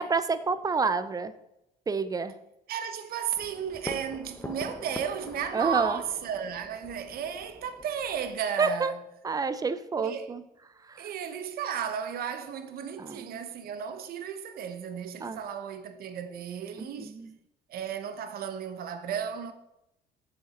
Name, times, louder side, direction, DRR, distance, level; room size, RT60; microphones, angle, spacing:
voice 1, 0.0-1.3 1.9-2.4 5.5-6.0 8.6-8.9 9.2-10.4 10.8-11.1 13.0-13.4 15.2-15.4 16.8-17.3, right 4 dB, 20° right, 0.6 m, -29 dB
voice 2, 2.7-9.0 10.0-10.3 11.0-17.1 17.7-19.5, right 8 dB, 60° right, 1.0 m, -34 dB
sound 1, 3.3-8.3, left 2 dB, 10° left, 0.9 m, -44 dB
7.2 x 7.0 x 5.1 m
cardioid pair, 110°, 17 cm